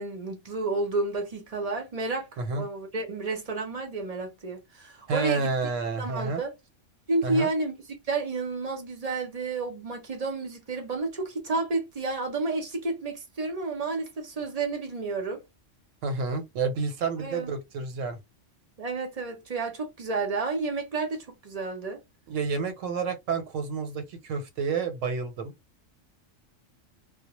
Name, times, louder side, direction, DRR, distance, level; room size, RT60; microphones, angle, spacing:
voice 1, 0.0-5.5 6.0-6.5 7.1-7.7 8.1-15.4 17.2-17.5 18.8-22.0, right 3 dB, 40° right, 0.6 m, -31 dB
voice 2, 5.1-6.4 7.2-7.5 16.0-18.2 22.3-25.5, right 4 dB, 85° right, 1.1 m, -30 dB
2.2 x 2.1 x 2.9 m
omnidirectional pair, 1.3 m